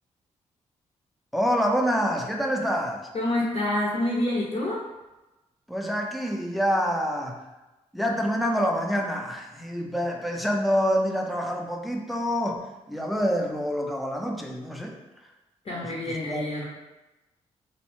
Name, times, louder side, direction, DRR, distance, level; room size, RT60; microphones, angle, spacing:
voice 1, 1.3-3.1 5.7-7.5 7.9-15.0 15.7-16.5, equal, ahead, 1 dB, 0.4 m, -27 dB
voice 2, 3.1-4.8 15.6-16.7, left 1 dB, 50° left, -4 dB, 0.6 m, -27 dB
2.6 x 2.0 x 3.0 m, 1.0 s
supercardioid pair, 50°, 13 cm